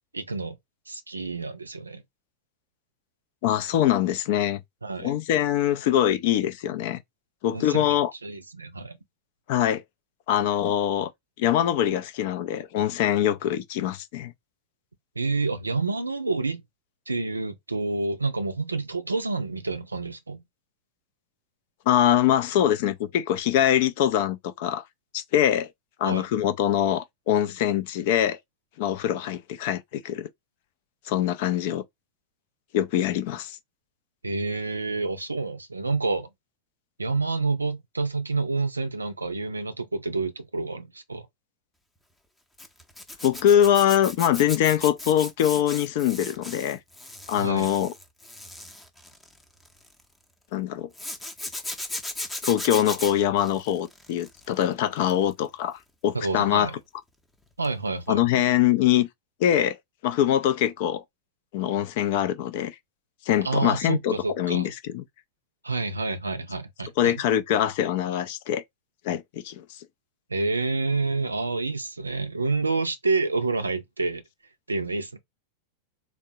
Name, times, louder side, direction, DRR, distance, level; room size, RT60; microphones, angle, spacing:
voice 1, 0.1-0.6 0.9-2.0 4.8-5.2 7.5-8.0 8.2-9.0 15.2-16.6 17.1-20.4 26.0-26.3 34.2-36.3 37.0-41.3 47.4-47.7 56.1-56.8 57.6-58.5 63.4-64.7 65.6-67.1 70.3-74.2 74.7-75.2, right 3 dB, 80° right, 0.4 m, -28 dB
voice 2, 3.4-4.6 5.0-7.0 7.4-8.1 9.5-9.8 10.3-11.1 11.4-14.3 21.9-24.8 25.1-25.7 26.0-28.4 28.8-30.3 31.1-31.8 32.7-33.6 43.2-46.8 47.3-47.9 50.5-50.9 52.4-56.7 58.1-59.1 59.4-59.8 60.0-61.0 61.5-62.8 63.3-65.0 67.0-68.6 69.0-69.6, left 11 dB, 50° left, 0.4 m, -23 dB
Zipper (clothing), 42.6-50.0 50.9-54.6 55.0-55.3 57.6-57.8 58.1-58.2, left 1 dB, 10° left, 0.6 m, -37 dB
3.5 x 2.0 x 2.6 m
figure-of-eight pair, 90°, 0 cm